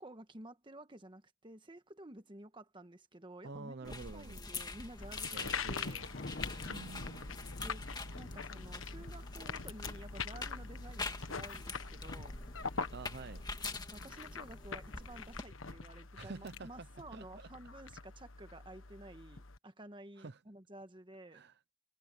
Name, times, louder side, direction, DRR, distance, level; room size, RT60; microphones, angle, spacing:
voice 1, 0.0-6.1 7.6-7.8 8.1-12.4 13.9-21.4, right 1 dB, 25° right, 1.5 m, -52 dB
voice 2, 3.4-4.4 5.3-6.1 6.7-7.3 12.9-13.5 16.2-16.9 17.1-17.5 20.2-20.4 21.3-21.7, right 3 dB, 55° right, 0.7 m, -48 dB
sound 1, 3.8-15.4, left 3 dB, 20° left, 2.0 m, -45 dB
sound 2, 5.0-19.6, left 4 dB, 75° left, 1.4 m, -44 dB
Thunder, 6.1-14.2 16.9-17.2, left 2 dB, 50° left, 1.1 m, -53 dB
head